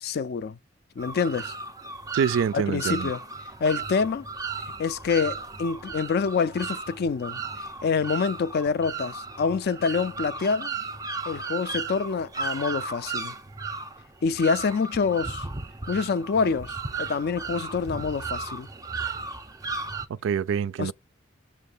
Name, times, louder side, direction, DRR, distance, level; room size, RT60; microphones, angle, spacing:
voice 1, 0.0-0.6 1.0-1.5 2.5-3.2 3.6-4.3 4.8-7.4 7.8-10.7 11.3-13.3 14.2-15.5 15.9-18.7 20.8-20.9, left 5 dB, 50° left, 0.4 m, -26 dB
sound 1, 1.0-20.1, right 4 dB, 15° right, 0.6 m, -35 dB
voice 2, 2.1-3.1 20.1-20.9, right 7 dB, 65° right, 0.3 m, -26 dB
6.5 x 3.1 x 5.4 m
head